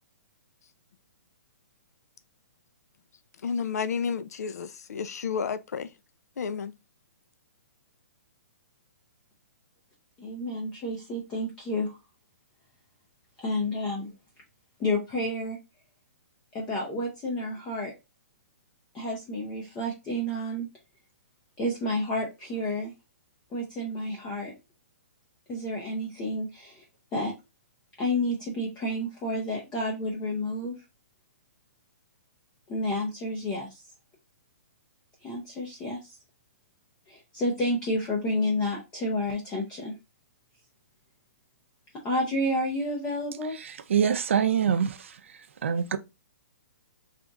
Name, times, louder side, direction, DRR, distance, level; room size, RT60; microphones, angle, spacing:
voice 1, 3.4-5.9 6.4-6.7, left 6 dB, 80° left, 0.4 m, -31 dB
voice 2, 10.2-12.0 13.4-14.1 14.8-15.6 16.5-17.9 18.9-20.7 21.6-22.9 23.5-24.5 25.5-26.8 27.1-27.3 28.0-30.8 32.7-33.8 35.2-36.2 37.1-39.9 42.0-43.5, left 1 dB, 10° left, 0.5 m, -30 dB
voice 3, 43.6-46.0, right 8 dB, 50° right, 0.5 m, -26 dB
3.5 x 2.4 x 4.0 m
hypercardioid pair, 180°, 8 cm